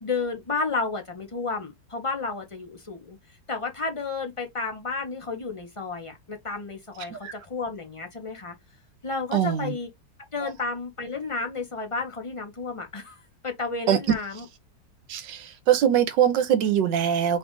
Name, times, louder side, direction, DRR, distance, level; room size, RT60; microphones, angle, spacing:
voice 1, 0.0-3.2 3.5-8.5 9.0-9.9 10.3-14.4, left 4 dB, 25° left, 0.7 m, -32 dB
voice 2, 9.3-9.7 13.9-14.0 15.1-17.4, right 9 dB, 80° right, 1.4 m, -22 dB
4.8 x 2.5 x 3.8 m
omnidirectional pair, 1.9 m